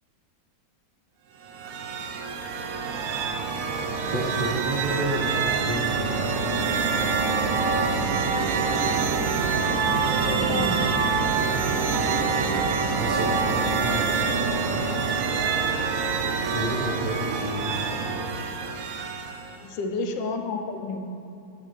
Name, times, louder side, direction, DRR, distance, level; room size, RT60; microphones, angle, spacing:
sound 1, 1.4-19.6, right 5 dB, 85° right, 0.7 m, -26 dB
sound 2, 3.0-15.3, left 2 dB, 50° left, 1.1 m, -42 dB
voice 1, 4.0-6.4 13.0-15.3 16.5-18.4, right 1 dB, 45° right, -5 dB, 0.6 m, -32 dB
voice 2, 10.3-10.9 19.6-21.0, left 3 dB, 90° left, 5 dB, 1.3 m, -31 dB
8.6 x 6.5 x 3.1 m, 2.6 s
omnidirectional pair, 2.0 m